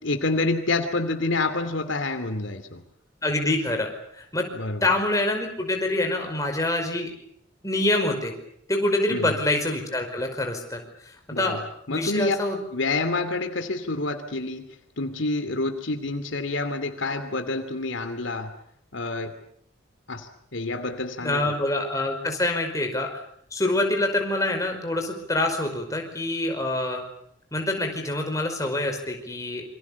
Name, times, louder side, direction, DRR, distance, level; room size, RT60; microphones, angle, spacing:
voice 1, 0.0-2.8 4.5-4.9 9.1-9.4 11.3-11.6 11.9-12.4 12.7-14.6 15.0-18.5 18.9-19.3 20.1-21.5, left 2 dB, 75° left, 8 dB, 2.8 m, -28 dB
voice 2, 3.2-4.5 4.8-7.1 7.6-8.3 8.7-10.8 11.3-11.6 11.9-12.6 21.2-23.1 23.5-27.0 27.5-29.6, left 1 dB, 15° left, 3 dB, 5.2 m, -26 dB
27.5 x 25.5 x 7.1 m, 0.69 s
head